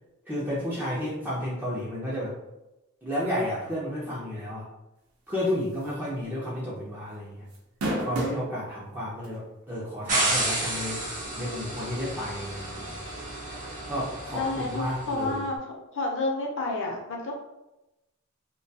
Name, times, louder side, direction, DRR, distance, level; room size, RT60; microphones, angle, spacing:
voice 1, 0.3-2.3 3.0-4.7 5.3-7.5 8.0-12.9 13.9-15.4, left 1 dB, 10° right, -7 dB, 0.5 m, -32 dB
sound 1, 5.8-6.1 6.4-6.5 7.5-8.5 9.2-9.3 10.9-11.0, right 1 dB, 80° right, 0.6 m, -29 dB
sound 2, 10.1-15.2, right 1 dB, 35° right, 0.9 m, -31 dB
voice 2, 14.3-17.4, left 2 dB, 60° left, -1 dB, 0.6 m, -30 dB
2.3 x 2.2 x 2.6 m, 0.95 s
head